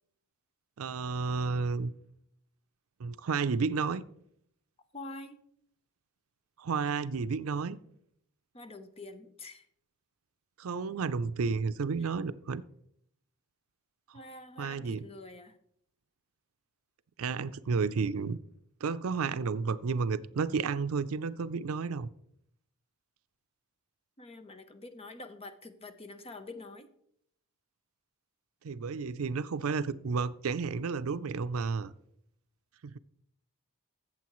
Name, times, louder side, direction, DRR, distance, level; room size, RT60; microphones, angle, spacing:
voice 1, 0.8-1.9 3.0-4.0 6.6-7.8 10.6-12.6 14.6-15.0 17.2-18.4 18.8-22.1 28.6-31.9 32.8-33.0, right 5 dB, 75° right, 0.5 m, -31 dB
voice 2, 4.9-5.4 8.5-9.7 12.0-12.1 14.1-15.6 24.2-26.9, left 2 dB, 30° left, 0.8 m, -46 dB
14.5 x 7.7 x 3.1 m
head